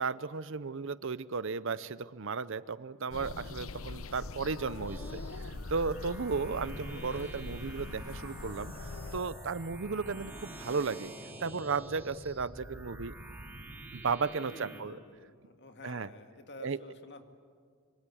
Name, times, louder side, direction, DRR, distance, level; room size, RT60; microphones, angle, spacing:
voice 1, 0.0-11.1 11.4-13.1 13.9-15.0 15.8-16.1 16.6-16.8, right 5 dB, 60° right, 17 dB, 0.6 m, -35 dB
sound 1, 3.1-9.2, left 3 dB, 65° left, 0.8 m, -42 dB
sound 2, 4.9-14.8, right 1 dB, 10° right, 3.5 m, -47 dB
voice 2, 14.5-17.2, left 2 dB, 50° left, 6 dB, 2.1 m, -50 dB
25.5 x 24.5 x 8.6 m, 2.1 s
head